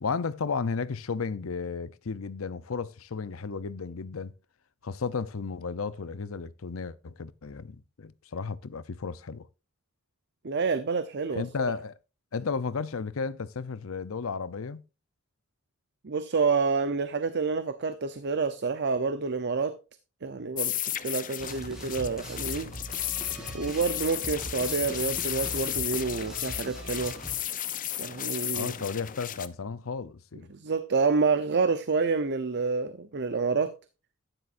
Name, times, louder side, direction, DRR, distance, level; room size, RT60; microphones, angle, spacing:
voice 1, 0.0-4.3 4.8-9.5 11.3-11.9 12.3-14.8 28.5-30.5, left 5 dB, 80° left, 0.7 m, -33 dB
voice 2, 10.4-11.4 16.0-19.7 20.2-22.7 23.5-27.2 28.0-28.7 30.5-33.7, right 4 dB, 55° right, 0.7 m, -28 dB
sound 1, 20.6-29.5, left 12 dB, 40° left, 0.7 m, -34 dB
sound 2, 21.4-27.4, equal, 5° right, 3.1 m, -40 dB
12.5 x 10.0 x 2.6 m
head